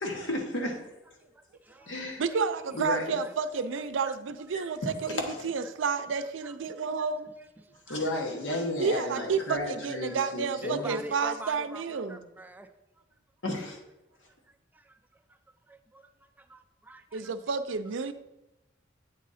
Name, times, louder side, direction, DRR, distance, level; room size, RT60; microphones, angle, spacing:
voice 1, 0.0-0.8 1.9-2.2 2.7-3.2 4.5-4.6 5.1-5.4 7.9-11.0 13.4-13.8, left 1 dB, 85° left, 1 dB, 1.3 m, -33 dB
voice 2, 1.2-2.4 3.2-3.3 3.7-4.2 4.6-4.7 6.4-6.5 7.6-8.0 8.5-8.6 9.1-9.2 10.0-10.2 10.6-12.7 14.5-15.4 15.7-17.3 18.0-18.1, right 1 dB, 10° right, 7 dB, 0.3 m, -46 dB
voice 3, 2.2-7.3 8.8-12.2 17.1-18.1, right 5 dB, 85° right, 11 dB, 0.5 m, -30 dB
8.3 x 3.7 x 4.1 m, 0.95 s
head